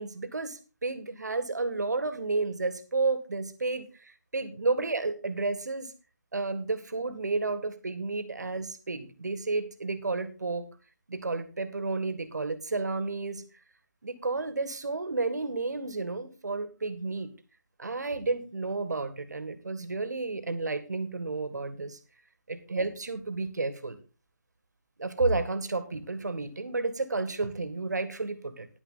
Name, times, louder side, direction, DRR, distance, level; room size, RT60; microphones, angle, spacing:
voice 1, 0.0-5.9 6.3-10.7 11.1-13.4 14.0-17.3 17.8-22.0 22.5-24.0 25.0-28.7, right 3 dB, 65° right, 11 dB, 1.8 m, -31 dB
10.5 x 10.0 x 3.9 m, 0.32 s
figure-of-eight pair, 155°, 10 cm